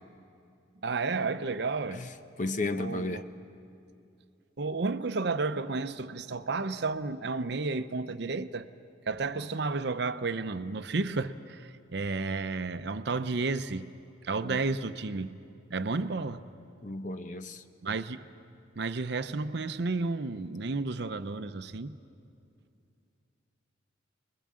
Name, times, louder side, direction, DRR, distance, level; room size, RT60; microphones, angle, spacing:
voice 1, 0.8-2.1 2.8-3.2 4.6-8.7 9.1-13.9 14.2-15.4 15.7-16.4 17.8-18.2 18.8-22.0, right 3 dB, 60° right, 0.7 m, -32 dB
voice 2, 2.4-3.2 14.4-14.6 16.8-17.6, left 2 dB, 40° left, 0.8 m, -33 dB
24.5 x 21.5 x 7.5 m
head